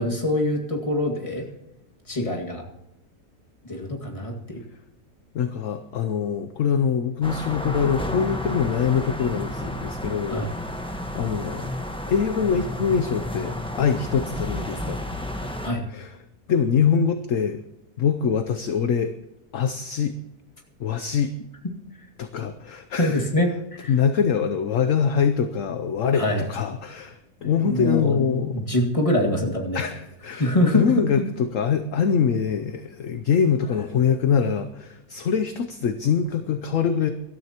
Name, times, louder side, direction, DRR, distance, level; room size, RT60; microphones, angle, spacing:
voice 1, 0.0-1.4 2.1-2.6 3.7-4.6 10.3-10.5 15.6-15.9 23.0-23.5 23.8-23.9 26.1-26.4 27.5-29.8 30.3-30.9, left 1 dB, 20° left, -1 dB, 2.0 m, -24 dB
voice 2, 5.3-10.5 10.8-11.7 12.1-15.0 15.4-15.5 15.9-16.2 16.5-17.6 18.0-19.1 19.5-20.2 20.8-21.3 22.2-23.2 23.9-28.6 29.4-29.5 29.7-37.1, left 7 dB, 60° left, 8 dB, 1.0 m, -24 dB
sound 1, 7.2-15.7, left 1 dB, 5° left, 1.0 m, -31 dB
24.0 x 13.0 x 3.0 m, 0.97 s
omnidirectional pair, 1.8 m